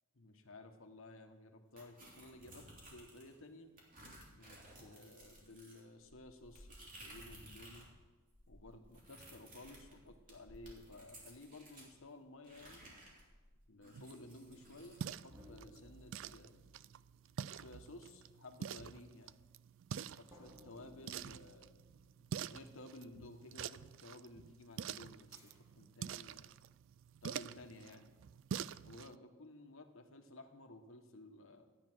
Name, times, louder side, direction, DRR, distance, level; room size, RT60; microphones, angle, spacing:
voice 1, 0.1-3.7 4.4-7.9 8.5-12.8 13.7-16.6 17.5-19.3 20.0-21.8 22.4-26.5 27.2-28.1 28.8-31.6, left 2 dB, 60° left, 4 dB, 1.4 m, -55 dB
sound 1, 1.8-3.4 3.8-7.9 8.2-11.9 12.4-15.0, right 1 dB, 40° right, 3.0 m, -57 dB
sound 2, 13.9-29.2, right 8 dB, 60° right, 0.3 m, -47 dB
sound 3, 15.3-18.1 20.3-23.0 25.3-25.9, equal, 15° right, 1.7 m, -62 dB
13.0 x 9.9 x 6.2 m, 1.3 s
head